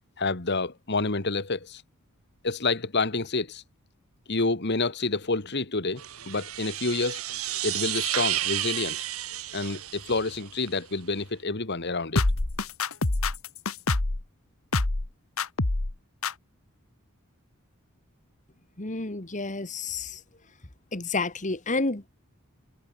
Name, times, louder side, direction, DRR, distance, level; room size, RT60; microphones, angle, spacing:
voice 1, 0.2-1.8 2.4-3.6 4.3-7.2 7.6-9.0 9.5-12.2, left 3 dB, 50° left, 1.8 m, -28 dB
sound 1, 6.0-10.7, right 13 dB, 85° right, 1.8 m, -32 dB
sound 2, 12.2-14.2 14.7-15.1 15.4-15.9 16.2-16.3, left 2 dB, 75° left, 1.7 m, -25 dB
voice 2, 18.8-20.2 20.9-22.1, left 3 dB, 35° left, 1.8 m, -30 dB
head